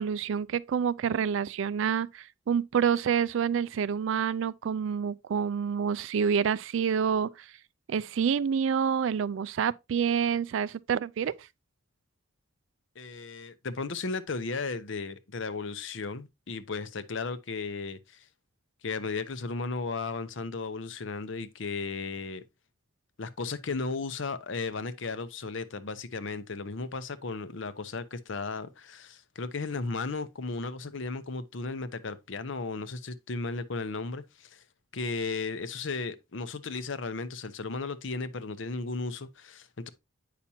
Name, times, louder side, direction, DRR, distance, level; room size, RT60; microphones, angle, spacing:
voice 1, 0.0-7.5 7.9-11.5, right 7 dB, 65° right, 0.3 m, -28 dB
voice 2, 13.0-18.3 18.8-22.4 23.2-34.6 34.9-39.9, left 4 dB, 60° left, 0.7 m, -35 dB
8.5 x 5.8 x 2.7 m
head